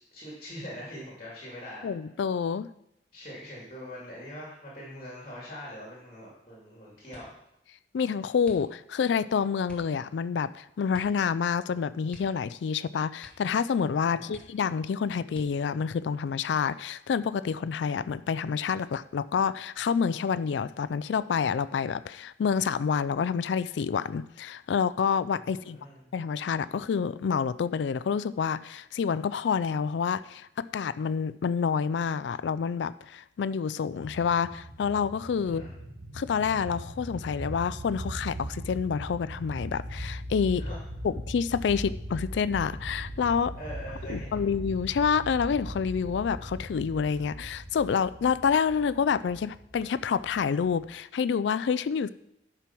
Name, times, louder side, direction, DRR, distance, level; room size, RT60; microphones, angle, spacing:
voice 1, 0.0-1.9 3.1-7.3 14.1-14.4 25.4-26.0 35.4-35.7 40.5-40.8 43.5-44.5, equal, 35° left, -5 dB, 2.6 m, -43 dB
voice 2, 1.8-2.7 7.9-25.8 26.1-35.6 36.1-40.7 41.0-43.5 44.1-52.1, left 6 dB, 80° left, 15 dB, 0.3 m, -28 dB
sound 1, 7.1-7.5 8.4-9.0 9.6-10.0 10.9-11.3 11.5-11.6 12.1-12.8 13.2-13.6 13.9-14.0 14.3-14.8 15.3-15.8 16.5-17.2 17.5-17.9, equal, 5° left, 1.3 m, -53 dB
sound 2, 33.9-50.9, equal, 85° right, 2.5 m, -40 dB
10.5 x 4.6 x 6.0 m, 0.79 s
head